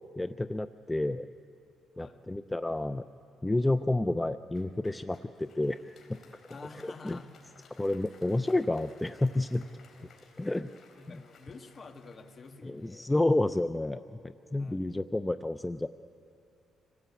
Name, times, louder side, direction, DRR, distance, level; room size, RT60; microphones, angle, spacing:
voice 1, 0.2-1.3 2.0-3.0 3.4-6.2 6.8-7.2 7.8-9.6 10.4-10.7 12.6-15.9, left 2 dB, 15° left, 12 dB, 0.5 m, -30 dB
voice 2, 1.9-2.3 6.5-7.4 10.9-13.1 14.6-14.9, left 3 dB, 40° left, 7 dB, 1.6 m, -49 dB
Applause, 4.5-13.9, left 4 dB, 55° left, 4.5 m, -60 dB
26.5 x 18.5 x 8.4 m, 2.6 s
cardioid pair, 90°, 0 cm